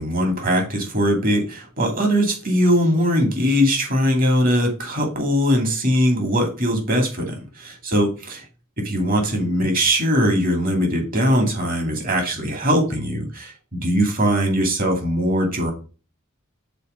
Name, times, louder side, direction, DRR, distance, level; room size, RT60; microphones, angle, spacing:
voice 1, 0.0-8.4 8.8-15.7, equal, 45° right, 4 dB, 2.4 m, -20 dB
6.9 x 4.2 x 5.0 m, 0.34 s
head